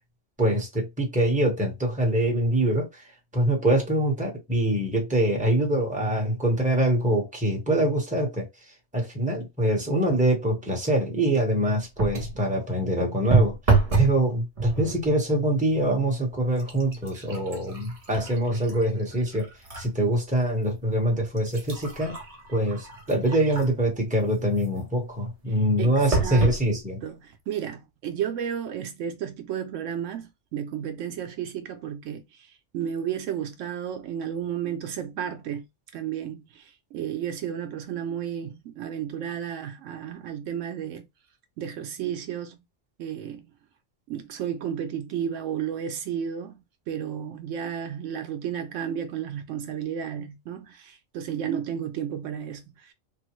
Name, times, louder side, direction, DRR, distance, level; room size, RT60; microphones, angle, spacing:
voice 1, 0.4-3.0 3.3-8.5 8.9-13.6 13.9-19.5 19.8-22.2 22.5-27.0, right 1 dB, 5° right, 1.0 m, -24 dB
sound 1, 12.0-12.4 13.3-14.2 14.6-15.1 15.8-15.9 16.3-19.9 20.4-20.5 21.2-23.9 26.1-26.6 27.3-27.4 27.7-27.8, right 4 dB, 35° right, 0.8 m, -28 dB
voice 2, 25.8-26.6 27.0-35.7 35.9-41.1 41.6-42.6 43.0-43.5 44.1-52.9, right 9 dB, 75° right, 0.9 m, -33 dB
3.3 x 2.1 x 3.0 m
omnidirectional pair, 1.3 m